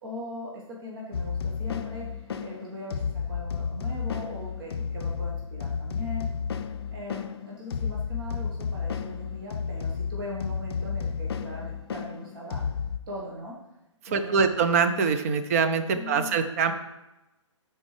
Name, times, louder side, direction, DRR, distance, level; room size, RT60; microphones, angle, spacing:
voice 1, 0.0-6.3 6.9-12.7 13.1-13.6 14.1-14.5 15.9-16.4, left 1 dB, 45° right, -3 dB, 1.3 m, -40 dB
sound 1, 1.1-13.0, left 6 dB, 50° left, 0.5 m, -32 dB
voice 2, 14.0-16.7, right 5 dB, 30° right, 8 dB, 0.5 m, -24 dB
13.0 x 4.4 x 3.3 m, 0.97 s
figure-of-eight pair, 130°, 16 cm